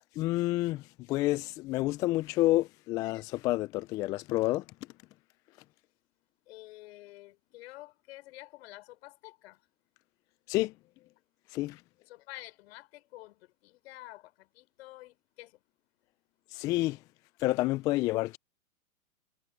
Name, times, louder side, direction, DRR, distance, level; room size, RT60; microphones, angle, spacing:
voice 1, 0.1-4.6 10.5-10.7 11.5-11.8 16.5-17.0 17.4-18.4, left 18 dB, 10° left, 0.4 m, -29 dB
voice 2, 6.5-9.6 12.1-15.6, left 18 dB, 45° left, 6.4 m, -49 dB
figure-of-eight pair, 110°, 43 cm